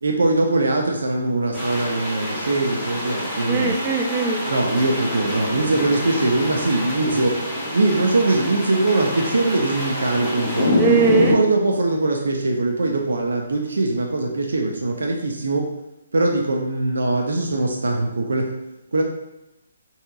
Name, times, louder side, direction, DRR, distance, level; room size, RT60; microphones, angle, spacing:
voice 1, 0.0-3.8 4.4-7.4 7.7-10.8 11.2-15.7 16.1-18.5 18.9-19.0, right 2 dB, 90° right, 1 dB, 0.4 m, -21 dB
sound 1, 1.5-11.3, left 1 dB, 5° left, 0.7 m, -26 dB
voice 2, 3.5-4.4 10.8-11.4, right 5 dB, 15° right, 1 dB, 0.3 m, -20 dB
3.5 x 2.8 x 2.3 m, 0.93 s
hypercardioid pair, 170°, 0 cm